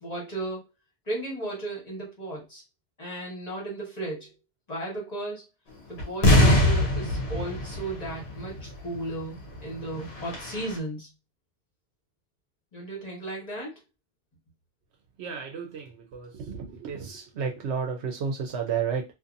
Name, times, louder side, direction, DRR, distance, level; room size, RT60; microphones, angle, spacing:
voice 1, 0.0-0.6 1.1-2.6 3.0-4.3 4.7-5.4 5.9-11.1 12.7-13.8, right 2 dB, 35° left, -2 dB, 1.2 m, -35 dB
sound 1, 6.0-8.6 8.9-9.0 9.5-9.6 10.0-10.7, left 1 dB, 65° left, 1.0 m, -22 dB
voice 2, 15.2-19.0, right 6 dB, 70° right, 1 dB, 0.8 m, -32 dB
2.6 x 2.5 x 2.5 m, 0.24 s
omnidirectional pair, 1.2 m